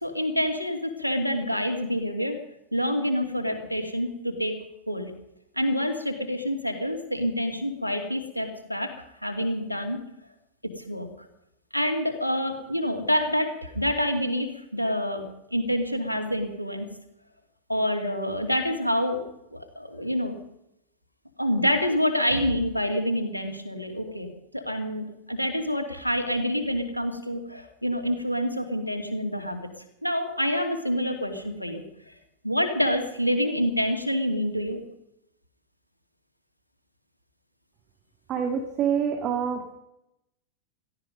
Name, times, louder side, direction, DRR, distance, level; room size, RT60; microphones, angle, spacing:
voice 1, 0.0-2.4 2.7-4.6 4.9-5.1 5.6-8.9 9.2-10.0 10.6-11.1 11.7-15.3 15.5-16.9 17.7-19.2 19.5-20.3 21.4-24.3 24.5-29.6 30.0-31.8 32.4-34.8, equal, 85° left, 5 dB, 2.6 m, -27 dB
voice 2, 38.3-39.7, right 7 dB, 35° right, 5 dB, 2.2 m, -26 dB
17.0 x 15.0 x 5.3 m, 0.83 s
figure-of-eight pair, 90°, 0 cm